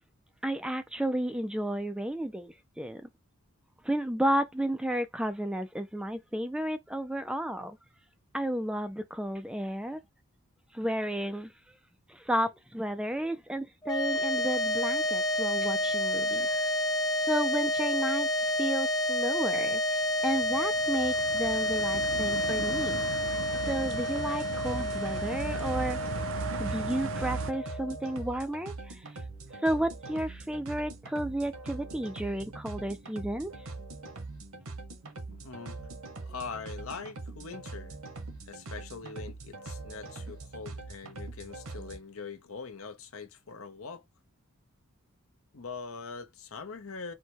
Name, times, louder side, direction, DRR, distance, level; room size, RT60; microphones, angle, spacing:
voice 1, 0.4-3.0 3.8-7.8 8.3-10.0 10.7-11.5 12.1-16.7 17.3-23.0 23.7-26.0 26.6-29.1 29.6-33.5, right 1 dB, 5° right, 0.3 m, -32 dB
sound 1, 13.8-28.3, left 1 dB, 15° left, 0.9 m, -30 dB
sound 2, 20.3-27.5, right 5 dB, 60° right, 0.5 m, -37 dB
sound 3, 23.5-42.0, right 3 dB, 75° right, 1.2 m, -43 dB
voice 2, 35.3-35.8 36.3-38.0 38.5-44.0 45.5-47.1, left 5 dB, 70° left, 0.9 m, -42 dB
4.5 x 2.2 x 4.5 m
head